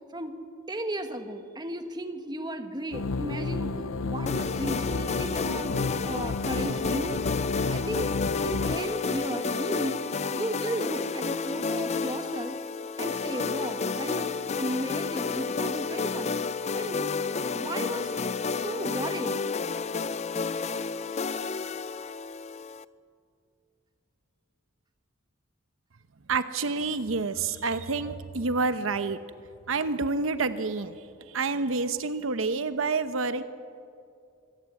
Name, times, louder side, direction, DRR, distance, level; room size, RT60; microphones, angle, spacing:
voice 1, 0.7-3.7 4.0-7.2 7.7-8.1 8.4-10.0 10.3-12.6 13.0-16.4 16.8-17.1 17.5-18.1 18.6-19.4, right 1 dB, 20° right, 6 dB, 1.6 m, -34 dB
sound 1, 2.9-8.8, left 3 dB, 75° left, 0.6 m, -31 dB
sound 2, 4.3-22.8, left 4 dB, 35° left, 0.5 m, -31 dB
voice 2, 26.3-29.2 29.7-33.4, right 4 dB, 80° right, 11 dB, 0.9 m, -28 dB
25.5 x 17.5 x 8.3 m, 2.4 s
head